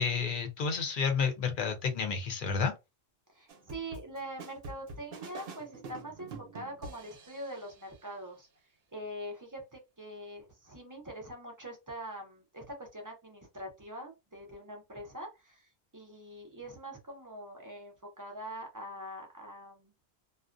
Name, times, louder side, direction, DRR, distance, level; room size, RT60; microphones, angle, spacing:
voice 1, 0.0-2.7, left 5 dB, 55° left, 0.7 m, -30 dB
voice 2, 3.3-8.5 8.9-19.9, right 1 dB, 25° right, 0.5 m, -44 dB
sound 1, 3.5-7.8, right 3 dB, 65° right, 0.8 m, -46 dB
2.4 x 2.0 x 2.4 m
omnidirectional pair, 1.1 m